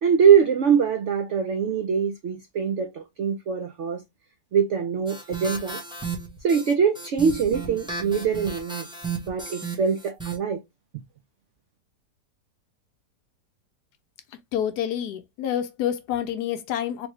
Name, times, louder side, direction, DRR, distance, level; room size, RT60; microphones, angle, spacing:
voice 1, 0.0-4.0 4.5-5.8 6.4-8.9 9.2-10.6, right 7 dB, 70° right, 0.6 m, -23 dB
sound 1, 5.1-10.4, right 4 dB, 5° right, 0.6 m, -34 dB
voice 2, 14.5-17.1, left 10 dB, 75° left, 1.1 m, -28 dB
3.4 x 3.2 x 3.0 m
omnidirectional pair, 1.8 m